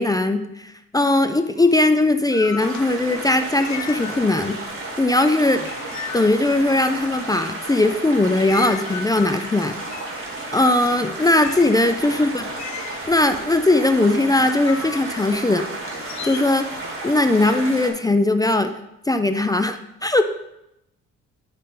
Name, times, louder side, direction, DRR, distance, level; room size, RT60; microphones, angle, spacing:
voice 1, 0.0-4.6 5.0-5.7 6.1-9.7 10.5-12.5 13.1-15.6 16.2-16.7 17.0-18.7 19.1-20.2, left 2 dB, 15° left, 8 dB, 0.4 m, -19 dB
sound 1, 1.6-4.7 4.9-7.2 7.8-17.0, left 8 dB, 65° left, 0.6 m, -38 dB
sound 2, 2.6-17.9, right 2 dB, 45° right, 2.1 m, -33 dB
9.8 x 4.1 x 3.8 m, 0.85 s
cardioid pair, 90°, 30 cm